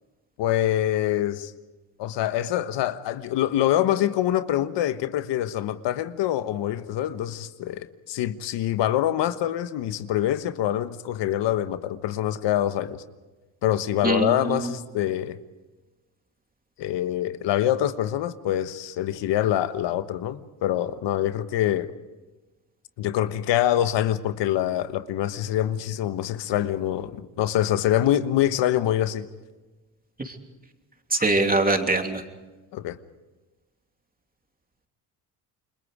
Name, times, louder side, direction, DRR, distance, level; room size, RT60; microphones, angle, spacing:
voice 1, 0.4-1.5 2.0-13.0 13.6-15.4 16.8-21.9 23.0-29.3 32.7-33.0, left 12 dB, 75° left, 1.3 m, -25 dB
voice 2, 14.0-14.6 30.2-30.3 31.1-32.2, right 2 dB, 20° right, 3.0 m, -23 dB
29.0 x 22.5 x 5.0 m
cardioid pair, 85°, 43 cm